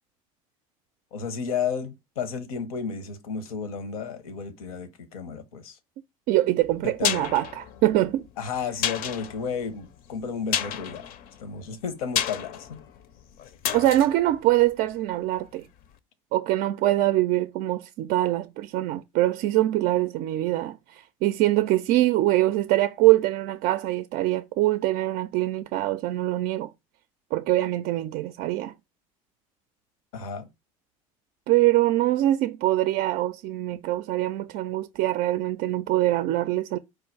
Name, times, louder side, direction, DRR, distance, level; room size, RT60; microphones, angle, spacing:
voice 1, 1.1-5.8 6.8-7.3 8.4-11.1 11.4-12.8 30.1-30.5, left 6 dB, 80° left, 0.9 m, -32 dB
voice 2, 6.3-8.3 13.7-15.7 16.3-26.7 27.3-28.7 31.5-36.8, right 15 dB, 55° right, 0.4 m, -23 dB
sound 1, 6.6-15.5 15.8-15.9, left 9 dB, 55° left, 0.6 m, -32 dB
4.6 x 2.4 x 4.6 m
hypercardioid pair, 80°, 18 cm